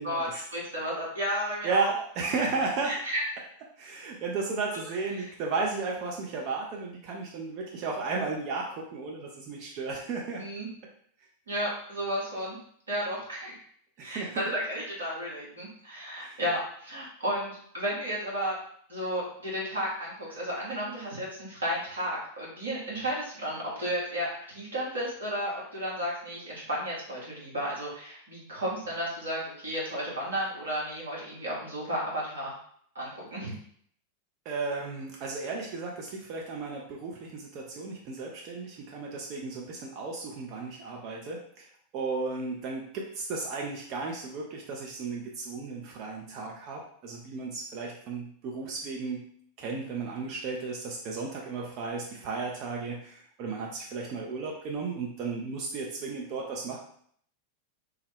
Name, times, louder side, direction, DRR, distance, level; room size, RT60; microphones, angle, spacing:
voice 1, 0.0-1.9 2.8-3.2 4.7-4.8 5.2-5.3 10.4-10.7 11.5-12.6 12.9-13.6 14.0-18.6 18.9-32.5 32.9-33.5, equal, 70° right, -5 dB, 1.3 m, -33 dB
voice 2, 1.6-2.9 3.8-10.5 14.0-14.4 16.2-16.4 34.5-41.7 41.9-49.3 49.6-56.8, right 4 dB, 40° right, -1 dB, 0.5 m, -34 dB
3.4 x 2.1 x 3.4 m, 0.62 s
figure-of-eight pair, 90°, 0 cm